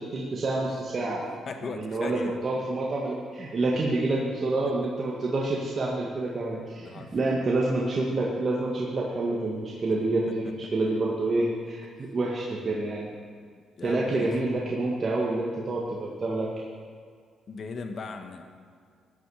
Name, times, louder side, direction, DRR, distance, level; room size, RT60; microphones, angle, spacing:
voice 1, 0.0-1.3 1.7-13.1 13.8-16.5, right 2 dB, 40° right, -4 dB, 1.8 m, -28 dB
voice 2, 1.0-2.4 4.7-4.8 6.7-7.4 9.8-9.9 13.8-14.3 17.5-18.4, left 4 dB, 50° left, 6 dB, 1.4 m, -38 dB
14.5 x 9.8 x 4.9 m, 2.1 s
cardioid pair, 90°, 0 cm